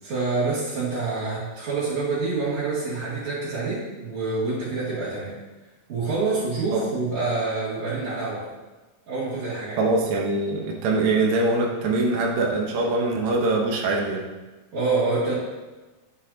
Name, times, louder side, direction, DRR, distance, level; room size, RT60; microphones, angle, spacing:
voice 1, 0.0-5.3 5.9-8.5 9.1-9.8 14.7-15.4, right 3 dB, 45° right, -13 dB, 3.2 m, -27 dB
voice 2, 9.8-14.2, right 2 dB, 90° right, -1 dB, 1.6 m, -23 dB
10.0 x 7.3 x 2.8 m, 1.2 s
omnidirectional pair, 4.9 m